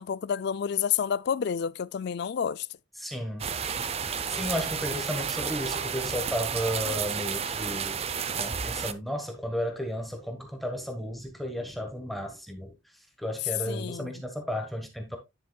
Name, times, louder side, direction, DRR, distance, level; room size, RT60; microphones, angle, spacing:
voice 1, 0.0-2.7 13.7-14.2, left 8 dB, 60° left, 0.3 m, -29 dB
voice 2, 3.0-3.5 4.0-8.0 8.3-15.2, equal, ahead, 1.2 m, -34 dB
sound 1, 3.4-8.9, right 6 dB, 30° right, 0.5 m, -31 dB
10.0 x 7.0 x 2.3 m
head